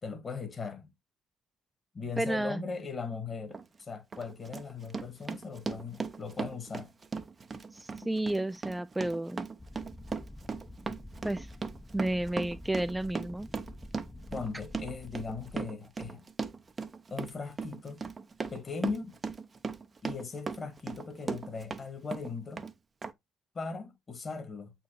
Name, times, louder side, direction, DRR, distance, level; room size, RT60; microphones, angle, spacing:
voice 1, 0.0-0.9 1.9-6.9 14.3-16.2 17.1-18.0 18.5-19.2 20.0-22.6 23.5-24.7, left 5 dB, 35° left, 1.7 m, -39 dB
voice 2, 2.2-2.6 7.7-9.4 11.2-11.5 11.9-13.5, right 1 dB, 10° right, 0.4 m, -31 dB
Run, 3.5-3.7 4.1-21.8 22.1-22.7 23.0-23.1, right 4 dB, 30° right, 0.7 m, -38 dB
sound 1, 9.6-15.6, left 1 dB, 10° left, 0.8 m, -48 dB
8.1 x 4.4 x 3.0 m
figure-of-eight pair, 50°, 0 cm